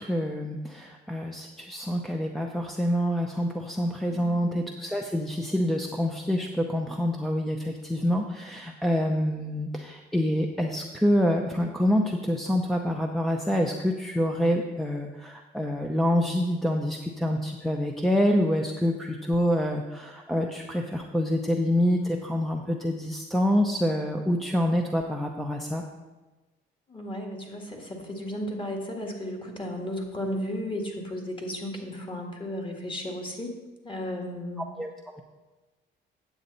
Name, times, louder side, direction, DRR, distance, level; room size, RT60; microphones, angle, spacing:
voice 1, 0.0-25.8 34.8-35.2, equal, ahead, 0 dB, 0.7 m, -26 dB
voice 2, 4.1-4.6 26.9-33.5 33.8-34.6, left 1 dB, 25° left, 2 dB, 1.9 m, -34 dB
9.3 x 7.8 x 4.1 m, 1.2 s
cardioid pair, 90°, 20 cm